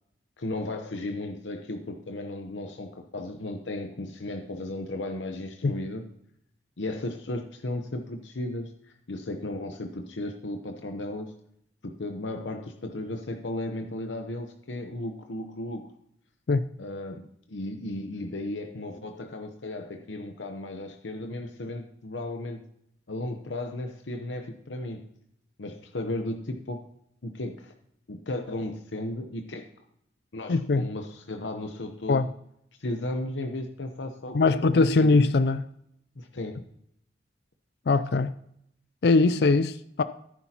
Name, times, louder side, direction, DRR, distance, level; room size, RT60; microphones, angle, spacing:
voice 1, 0.4-6.1 6.8-11.3 11.8-15.9 16.8-22.6 23.1-25.1 25.6-26.8 27.2-27.7 28.1-29.6 30.3-32.3 32.8-34.7 35.0-35.1 36.2-36.6, left 1 dB, 85° left, 5 dB, 0.9 m, -35 dB
voice 2, 30.5-30.8 32.1-32.3 34.3-35.6 37.9-38.3 39.0-40.0, left 3 dB, 60° left, 12 dB, 0.4 m, -21 dB
15.0 x 9.9 x 2.9 m, 0.73 s
head